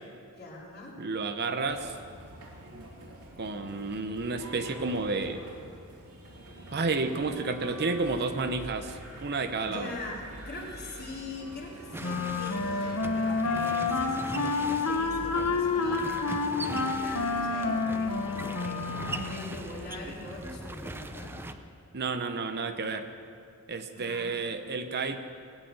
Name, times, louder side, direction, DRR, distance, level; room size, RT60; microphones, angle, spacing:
voice 1, 0.4-0.9 9.6-21.3 23.9-24.4, left 2 dB, 45° left, -4 dB, 3.2 m, -43 dB
voice 2, 1.0-1.9 2.7-2.9 3.4-5.4 6.7-10.0 21.9-23.1 23.7-25.2, right 3 dB, 50° right, 8 dB, 0.8 m, -31 dB
sound 1, 1.6-21.4, right 1 dB, 85° right, 2.9 m, -46 dB
sound 2, 11.9-21.5, right 1 dB, 10° right, 0.6 m, -41 dB
Wind instrument woodwind instrument, 12.0-19.5, left 4 dB, 80° left, 1.1 m, -29 dB
18.0 x 9.2 x 7.8 m, 2.4 s
head